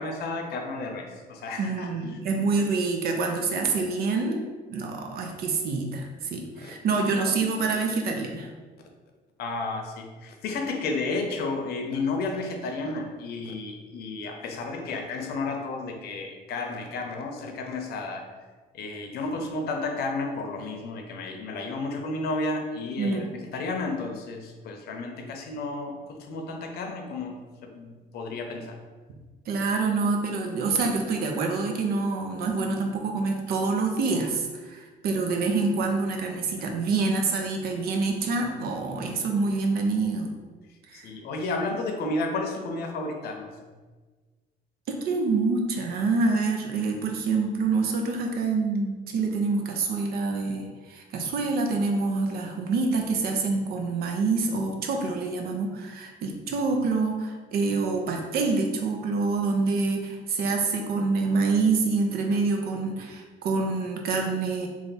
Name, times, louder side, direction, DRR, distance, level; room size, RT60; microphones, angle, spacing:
voice 1, 0.0-2.2 2.6-2.7 6.6-6.7 9.4-18.2 18.7-28.8 40.9-43.5, left 3 dB, 70° left, 3 dB, 0.6 m, -32 dB
voice 2, 1.6-4.4 4.7-8.5 23.0-23.3 29.5-40.3 40.9-41.1 44.9-64.7, right 3 dB, 65° right, 2 dB, 0.6 m, -26 dB
3.3 x 2.4 x 4.0 m, 1.4 s
cardioid pair, 110°, 17 cm